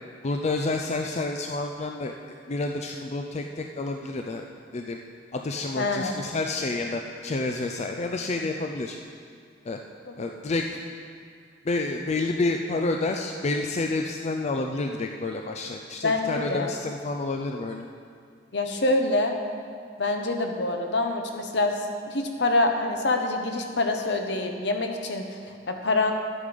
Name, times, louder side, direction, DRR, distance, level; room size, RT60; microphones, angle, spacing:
voice 1, 0.2-4.5 4.7-5.0 5.3-9.0 9.7-9.8 10.2-10.8 11.6-17.9, left 2 dB, 35° left, 3 dB, 0.4 m, -29 dB
voice 2, 5.8-6.1 16.0-16.7 18.5-19.4 20.0-21.8 22.1-26.1, left 2 dB, 65° left, 4 dB, 1.1 m, -26 dB
11.5 x 8.5 x 5.2 m, 2.2 s
head